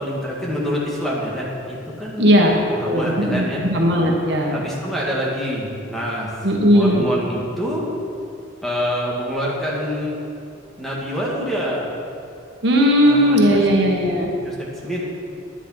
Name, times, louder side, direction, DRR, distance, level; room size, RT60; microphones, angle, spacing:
voice 1, 0.0-2.3 2.7-3.7 4.5-6.3 6.7-7.9 8.6-10.2 10.8-12.0 13.0-15.2, equal, ahead, -5 dB, 1.9 m, -26 dB
voice 2, 2.2-2.6 2.8-4.5 6.4-7.0 12.6-14.3, equal, 60° right, -1 dB, 1.6 m, -17 dB
10.5 x 10.0 x 5.8 m, 2.4 s
head